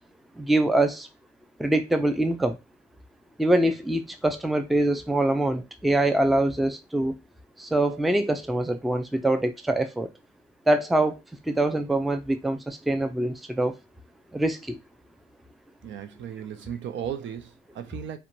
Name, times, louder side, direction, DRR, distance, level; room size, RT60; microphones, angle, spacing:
voice 1, 0.4-1.1 1.6-2.6 3.4-7.1 7.6-10.1 10.7-11.2 11.5-13.8 14.3-14.8, right 1 dB, ahead, 0.4 m, -24 dB
voice 2, 15.8-18.2, right 9 dB, 70° right, 0.5 m, -36 dB
2.5 x 2.2 x 2.9 m
cardioid pair, 90°, 20 cm